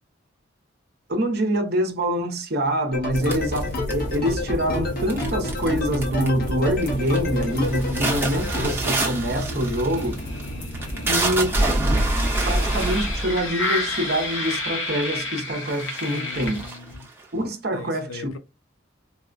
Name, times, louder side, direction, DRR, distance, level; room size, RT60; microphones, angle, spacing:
voice 1, 1.1-10.2 11.1-11.6 12.5-16.6 17.3-18.4, equal, 50° right, 0.7 m, -25 dB
sound 1, 2.9-8.7, left 2 dB, 45° left, 0.9 m, -29 dB
sound 2, 3.1-17.0, left 1 dB, 70° left, 1.1 m, -31 dB
sound 3, 3.2-4.3 5.1-5.7 5.9-6.4 6.8-7.2 7.5-14.6 15.3-15.4 15.6-17.2, right 2 dB, 10° right, 0.7 m, -26 dB
voice 2, 16.1-17.1 17.7-18.4, left 5 dB, 90° left, 0.5 m, -40 dB
4.1 x 2.1 x 2.4 m
head